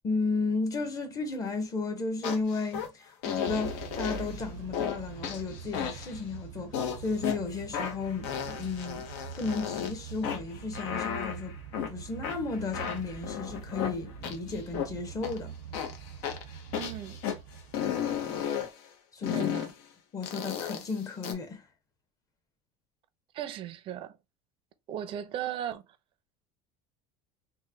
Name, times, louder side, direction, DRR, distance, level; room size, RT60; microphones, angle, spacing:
voice 1, 0.0-9.1 9.4-11.6 11.9-15.5 18.2-18.5 19.1-19.5 20.1-21.7, left 4 dB, 25° left, 0.8 m, -34 dB
sound 1, 2.2-2.9 3.2-4.4 4.7-5.0 5.2-6.2 6.7-7.4 7.7-9.9 10.2-11.9 12.2-14.9 15.2-15.4 15.7-17.4 17.7-18.7 19.2-19.7 20.2-21.3, left 8 dB, 75° left, 0.8 m, -34 dB
Motor vehicle (road) / Engine starting / Accelerating revving vroom, 3.5-18.4, right 7 dB, 85° right, 0.6 m, -44 dB
voice 2, 16.8-17.2 19.3-19.7 23.3-24.2 24.9-25.8, right 10 dB, 40° right, 0.5 m, -36 dB
3.1 x 2.2 x 3.3 m
supercardioid pair, 140°, 14 cm